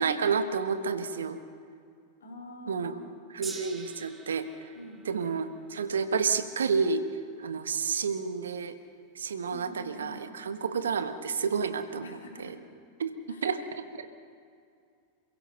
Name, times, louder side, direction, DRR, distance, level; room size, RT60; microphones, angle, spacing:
voice 1, 0.0-1.4 2.7-2.9 3.3-4.7 5.0-7.1 7.4-8.8 9.1-12.5 13.0-14.1, right 5 dB, 65° right, 9 dB, 1.3 m, -30 dB
voice 2, 2.2-3.2 4.7-5.1 9.5-10.3 12.0-12.6 13.3-13.6, left 1 dB, 65° left, 0 dB, 3.8 m, -46 dB
Gong, 3.4-9.8 10.6-10.7, right 4 dB, 15° right, 1.9 m, -49 dB
28.0 x 16.0 x 6.6 m, 2.4 s
figure-of-eight pair, 90°, 0 cm